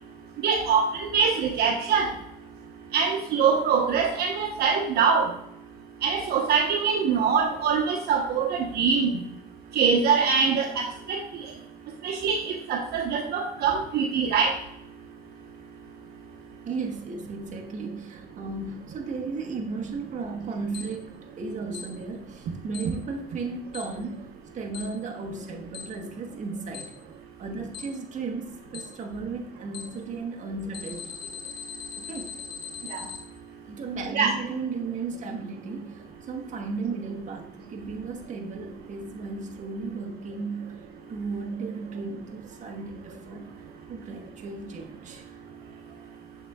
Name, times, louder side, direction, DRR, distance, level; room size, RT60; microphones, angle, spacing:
voice 1, 0.4-2.1 2.9-5.3 6.0-9.1 9.7-11.2 12.0-14.5 32.9-33.0 34.1-34.3, right 6 dB, 70° right, 2 dB, 0.9 m, -23 dB
voice 2, 16.7-24.3 24.5-27.0 27.4-31.3 32.0-32.3 33.6-40.8 41.1-43.6 43.9-45.4, right 4 dB, 45° right, 2 dB, 1.1 m, -35 dB
Alarm, 20.7-20.8 21.7-21.8 22.7-22.8 23.7-23.8 24.7-24.8 25.7-25.8 26.7-26.8 27.7-27.8 28.7-28.8 29.7-29.8 30.7-33.2, left 8 dB, 75° left, 1.4 m, -38 dB
7.1 x 6.6 x 2.3 m, 0.72 s
cardioid pair, 110°, 17 cm